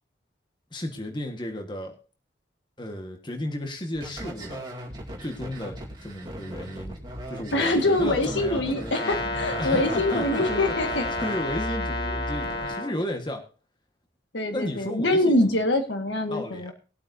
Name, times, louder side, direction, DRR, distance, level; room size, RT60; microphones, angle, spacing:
voice 1, 0.7-2.0 2.8-4.6 5.2-7.0 7.3-9.1 9.6-10.7 11.1-13.4 14.5-15.5 16.3-16.7, left 1 dB, 25° left, 4 dB, 1.5 m, -33 dB
sound 1, 3.9-12.7, right 1 dB, 20° right, 2.4 m, -37 dB
voice 2, 7.5-11.1 14.3-16.7, left 1 dB, 75° left, 5 dB, 1.8 m, -24 dB
Brass instrument, 8.9-13.0, left 2 dB, 55° left, 1.8 m, -31 dB
20.0 x 8.6 x 2.7 m, 0.37 s
head